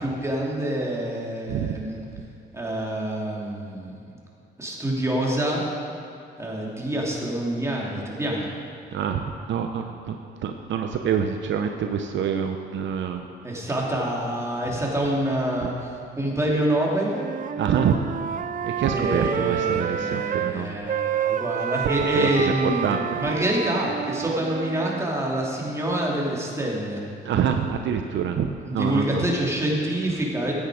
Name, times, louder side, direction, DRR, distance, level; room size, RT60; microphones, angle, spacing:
voice 1, 0.0-2.0 2.5-4.1 4.6-5.6 6.4-8.5 13.4-17.1 18.9-27.0 28.6-30.5, right 1 dB, 15° right, -3 dB, 3.0 m, -26 dB
voice 2, 8.9-13.2 15.6-15.7 17.6-18.0 18.6-20.8 22.1-23.2 27.2-29.3, right 8 dB, 70° right, 5 dB, 0.8 m, -26 dB
Wind instrument woodwind instrument, 17.0-20.5 20.9-25.1, right 8 dB, 40° right, 0.5 m, -29 dB
14.5 x 9.5 x 5.0 m, 2.6 s
cardioid pair, 90°, 20 cm